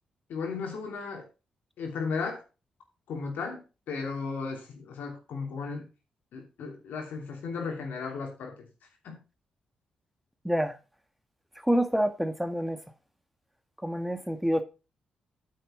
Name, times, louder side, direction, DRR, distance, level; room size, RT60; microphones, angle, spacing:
voice 1, 0.3-1.3 1.8-2.4 3.1-5.9 6.3-8.7 9.0-9.2, left 4 dB, 75° left, 2.9 m, -35 dB
voice 2, 11.7-12.8 13.8-14.6, equal, 5° right, 1.8 m, -27 dB
9.0 x 6.5 x 5.0 m
hypercardioid pair, 45°, 3 cm